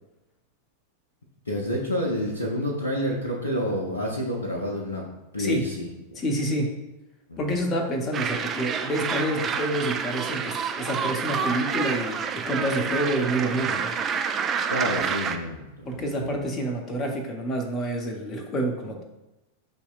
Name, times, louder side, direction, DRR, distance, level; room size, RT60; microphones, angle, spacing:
voice 1, 1.5-5.0 5.3-6.2 7.3-7.6 14.7-16.5, equal, 75° left, -2 dB, 0.6 m, -29 dB
voice 2, 6.2-6.8 7.4-13.9 15.0-15.1 15.9-19.0, right 1 dB, 25° left, 2 dB, 0.6 m, -28 dB
sound 1, 8.1-15.4, right 6 dB, 25° right, 0.3 m, -28 dB
6.0 x 2.8 x 2.3 m, 1.0 s
figure-of-eight pair, 90°, 0 cm